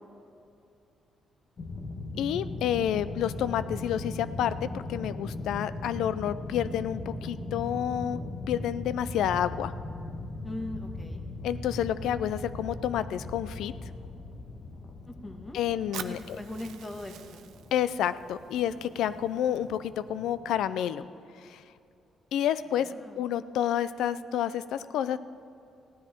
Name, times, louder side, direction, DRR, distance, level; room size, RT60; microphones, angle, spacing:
sound 1, 1.6-20.7, left 2 dB, 55° left, 1.3 m, -39 dB
voice 1, 2.2-9.7 11.4-13.7 15.5-16.4 17.7-21.0 21.4-21.6 22.3-25.2, left 10 dB, 80° left, 15 dB, 0.4 m, -29 dB
voice 2, 10.4-11.2 15.1-15.6 16.0-17.4 22.9-23.2, left 1 dB, 20° left, 4 dB, 1.4 m, -40 dB
Fire, 15.9-19.9, right 10 dB, 80° right, 0.5 m, -46 dB
16.5 x 9.9 x 4.4 m, 2.6 s
cardioid pair, 90°, 0 cm